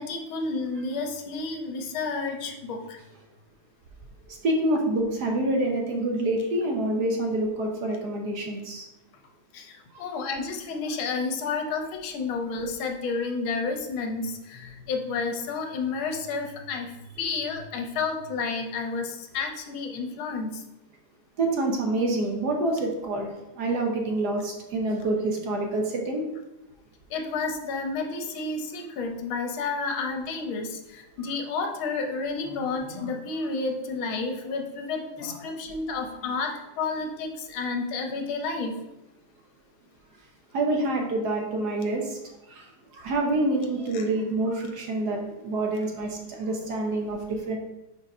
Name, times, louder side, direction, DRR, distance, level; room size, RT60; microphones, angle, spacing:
voice 1, 0.0-3.0 9.5-20.6 27.1-38.8 43.9-44.0, left 4 dB, 80° left, 4 dB, 1.6 m, -31 dB
voice 2, 4.3-8.8 9.9-10.1 21.4-26.2 40.5-42.2 42.5-42.7 42.9-47.6, right 2 dB, 60° right, 1 dB, 1.2 m, -27 dB
4.6 x 4.4 x 5.3 m, 0.97 s
omnidirectional pair, 2.2 m